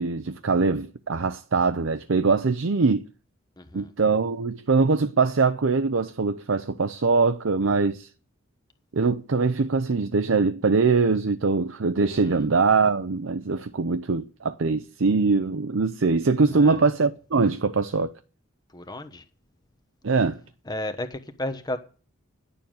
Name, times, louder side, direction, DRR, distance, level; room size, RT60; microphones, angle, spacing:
voice 1, 0.0-3.1 3.7-8.1 8.9-18.1 20.0-20.4, right 4 dB, 75° right, 0.7 m, -22 dB
voice 2, 3.6-3.9 12.0-12.5 16.4-16.8 18.7-19.2 20.6-21.8, left 1 dB, 20° left, 1.1 m, -34 dB
11.0 x 7.0 x 9.0 m
head